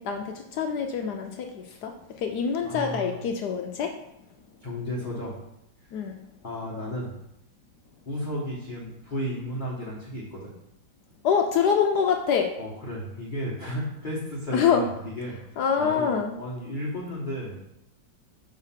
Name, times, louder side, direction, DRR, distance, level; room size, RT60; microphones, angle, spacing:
voice 1, 0.0-3.9 5.9-6.2 11.2-12.5 14.5-14.9 15.6-16.4, left 7 dB, 70° left, 4 dB, 1.0 m, -25 dB
voice 2, 2.6-3.1 4.6-5.3 6.4-7.1 8.0-10.5 12.6-17.6, equal, 30° left, -6 dB, 1.1 m, -33 dB
6.3 x 4.0 x 5.7 m, 0.82 s
omnidirectional pair, 2.0 m